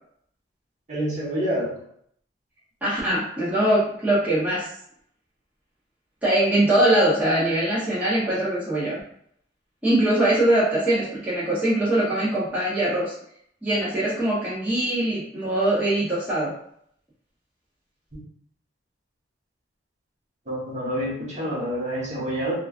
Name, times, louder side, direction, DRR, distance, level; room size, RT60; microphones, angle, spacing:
voice 1, 0.9-1.7 20.5-22.5, equal, 40° right, -6 dB, 1.0 m, -27 dB
voice 2, 2.8-4.7 6.2-9.0 9.8-13.1 13.6-16.5, right 1 dB, 10° right, -10 dB, 0.8 m, -22 dB
3.0 x 2.3 x 2.3 m, 0.66 s
head